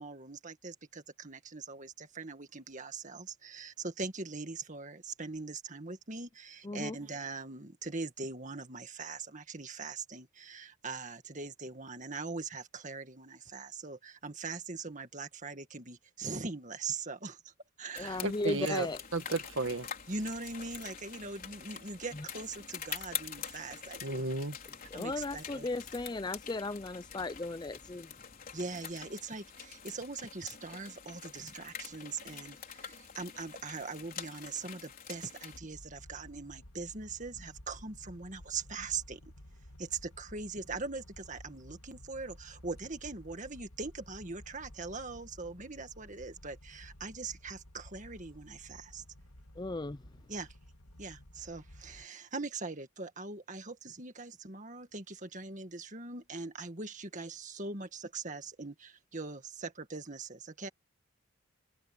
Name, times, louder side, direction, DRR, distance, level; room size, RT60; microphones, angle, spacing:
voice 1, 0.0-17.5 17.8-18.2 18.6-18.8 20.1-24.2 24.9-25.7 28.5-39.2 39.8-49.0 50.3-50.5 51.0-60.7, right 4 dB, 35° right, 2.0 m, -41 dB
voice 2, 6.6-7.0 18.0-19.0 22.1-22.3 24.9-28.1 49.6-50.0, left 2 dB, 20° left, 0.4 m, -36 dB
sound 1, 17.9-35.6, left 8 dB, 40° left, 4.5 m, -46 dB
voice 3, 18.2-18.9 19.1-19.9 24.0-24.6, right 2 dB, 60° right, 1.9 m, -33 dB
sound 2, 35.5-52.1, left 1 dB, 80° left, 2.4 m, -54 dB
head